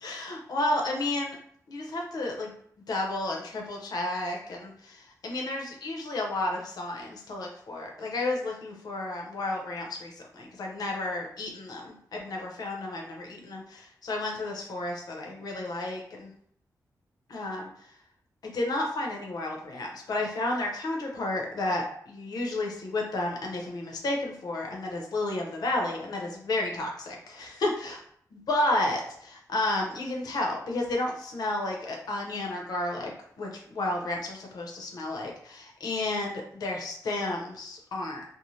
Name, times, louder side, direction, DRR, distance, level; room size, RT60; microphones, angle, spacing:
voice 1, 0.0-1.4 1.7-2.5 2.9-16.3 17.3-17.7 18.4-27.9 28.5-33.1 33.4-38.2, left 2 dB, 70° left, 0 dB, 0.7 m, -32 dB
2.6 x 2.0 x 3.1 m, 0.64 s
wide cardioid pair, 150°, 7 cm